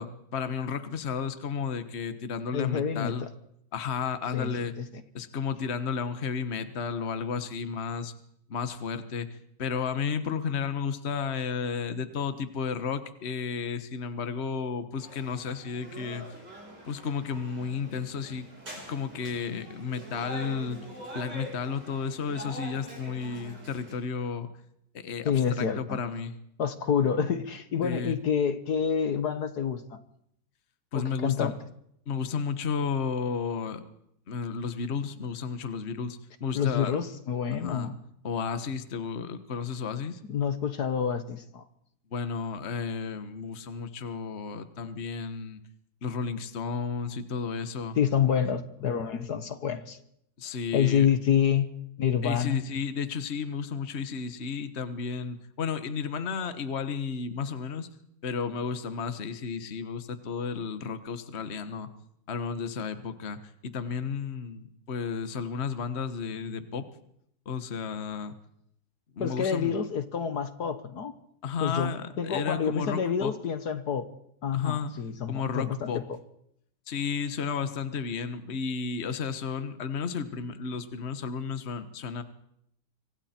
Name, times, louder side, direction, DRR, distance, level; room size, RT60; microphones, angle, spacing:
voice 1, 0.0-3.3 3.7-4.7 5.1-8.1 8.5-16.2 16.8-18.5 18.9-20.8 21.1-24.5 24.9-26.4 27.8-28.2 30.9-31.5 32.1-33.8 34.3-37.0 37.6-37.9 38.2-40.2 42.1-45.6 46.0-48.0 50.4-51.1 52.2-57.9 58.2-61.9 62.3-66.9 67.4-68.3 69.2-69.8 71.4-73.3 74.5-74.9 75.3-76.0 76.9-82.2, left 6 dB, 40° left, 1.5 m, -33 dB
voice 2, 2.5-3.3 4.3-4.5 4.8-4.9 25.3-26.0 26.6-30.0 30.9-31.6 36.6-38.0 40.3-41.6 48.0-50.0 50.7-51.7 52.0-52.6 69.2-71.1 71.6-74.1 74.4-75.9, left 7 dB, 60° left, 1.7 m, -28 dB
sound 1, 15.0-24.0, right 1 dB, 70° right, 8.8 m, -44 dB
26.0 x 25.0 x 4.5 m
omnidirectional pair, 1.9 m